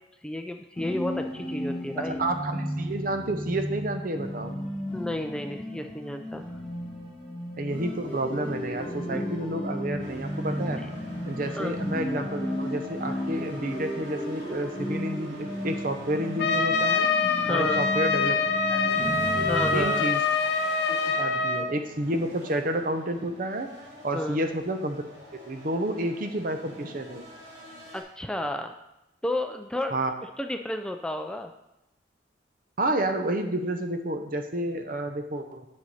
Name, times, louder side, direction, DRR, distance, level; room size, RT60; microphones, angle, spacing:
voice 1, 0.2-2.2 4.9-6.5 10.8-10.9 11.5-11.8 17.4-17.8 19.4-20.1 24.1-24.4 27.9-28.8 29.2-29.9 30.4-31.5, left 1 dB, 5° left, 5 dB, 0.4 m, -32 dB
sound 1, 0.8-19.8, equal, 30° left, 1.9 m, -34 dB
voice 2, 2.0-4.6 7.6-10.8 11.3-17.1 17.5-18.4 18.7-19.0 19.7-20.2 20.9-23.7 24.0-25.0 25.5-27.2 29.9-30.2 32.8-35.7, right 1 dB, 50° right, 6 dB, 0.8 m, -30 dB
sound 2, 10.0-28.0, left 1 dB, 80° right, 2.6 m, -45 dB
Trumpet, 16.4-21.7, left 4 dB, 65° left, 0.7 m, -25 dB
9.1 x 6.4 x 4.2 m, 0.91 s
head